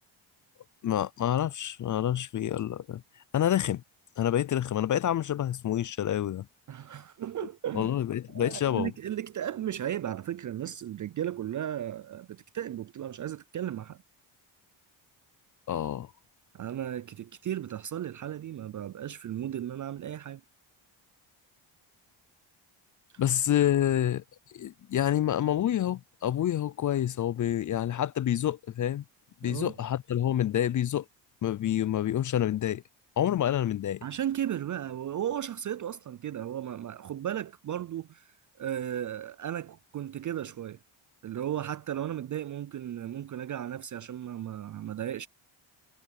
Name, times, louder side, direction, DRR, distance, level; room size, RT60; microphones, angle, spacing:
voice 1, 0.8-3.0 3.3-3.8 4.2-6.5 7.7-8.9 15.7-16.1 23.2-24.2 24.5-29.0 29.4-31.0 31.4-32.8 33.2-34.0, left 11 dB, 40° left, 0.4 m, -28 dB
voice 2, 6.7-8.0 8.3-14.0 16.5-20.4 29.4-29.7 34.0-40.8 41.2-45.3, right 11 dB, 40° right, 0.4 m, -35 dB
cardioid pair, 95°, 49 cm